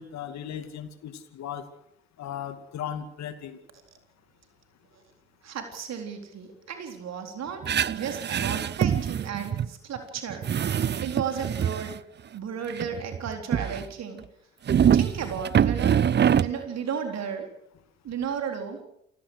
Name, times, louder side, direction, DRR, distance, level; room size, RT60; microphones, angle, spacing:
voice 1, 0.0-1.6 2.2-3.6, left 9 dB, 55° left, 9 dB, 2.4 m, -36 dB
voice 2, 5.4-10.5 10.8-14.2 14.9-16.0 16.4-17.5 18.0-18.8, right 7 dB, 50° right, 5 dB, 4.1 m, -34 dB
sound 1, 7.6-9.7 10.0-10.1 10.3-12.0 12.7-13.9 14.7-16.5, right 9 dB, 30° right, 0.7 m, -24 dB
28.5 x 16.5 x 6.5 m, 0.75 s
figure-of-eight pair, 45°, 33 cm